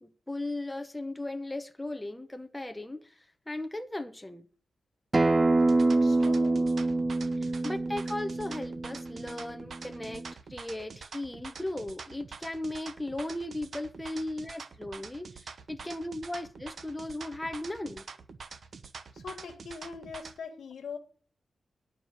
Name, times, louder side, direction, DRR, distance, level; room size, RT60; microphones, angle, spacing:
voice 1, 0.0-3.1 3.5-4.5 7.4-10.2 10.5-18.0, left 1 dB, 10° left, 0.8 m, -37 dB
Acoustic guitar, 5.1-10.3, right 2 dB, 25° right, 0.4 m, -26 dB
sound 1, 5.6-20.4, right 5 dB, 55° right, 0.8 m, -46 dB
voice 2, 5.9-6.7 19.1-21.0, left 5 dB, 90° left, 1.5 m, -42 dB
11.5 x 4.7 x 7.8 m
wide cardioid pair, 135°, 0 cm